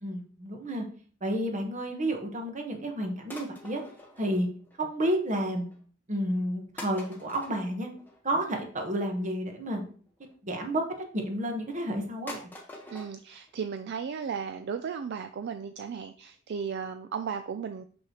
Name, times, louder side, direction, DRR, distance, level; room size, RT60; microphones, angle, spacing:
voice 1, 0.0-0.8 1.2-3.8 4.2-4.5 4.8-5.7 6.1-7.9 8.2-9.8 10.4-10.8 11.1-12.4, right 1 dB, 35° right, 4 dB, 1.2 m, -30 dB
sound 1, 3.3-5.0 5.3-5.8 6.4-6.5 6.8-10.3 11.0-11.6 11.9-12.0 12.3-13.1 13.5-13.6 13.8-13.9 14.3-14.4 14.6-14.7 15.1-15.2 15.5-15.6 16.0-16.1 16.4-16.5, left 1 dB, 10° left, 1.1 m, -46 dB
voice 2, 12.9-17.8, right 6 dB, 55° right, 8 dB, 0.4 m, -35 dB
6.4 x 5.7 x 3.0 m, 0.43 s
head